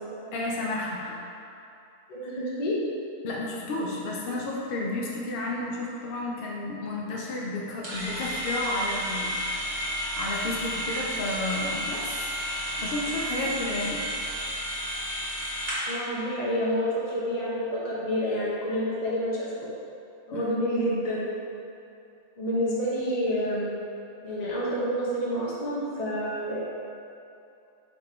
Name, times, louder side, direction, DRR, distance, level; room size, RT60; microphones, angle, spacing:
voice 1, 0.3-1.2 2.2-2.5 3.2-9.4 9.9-12.3 12.8-14.1 20.3-20.5, left 2 dB, 55° left, -3 dB, 0.6 m, -32 dB
voice 2, 2.1-2.8 15.9-19.7 20.3-21.2 22.4-23.7 24.2-26.6, equal, 30° left, -7 dB, 1.0 m, -28 dB
sound 1, 7.8-16.0, equal, 40° right, 1.5 m, -31 dB
5.2 x 4.4 x 4.4 m, 2.7 s
omnidirectional pair, 1.8 m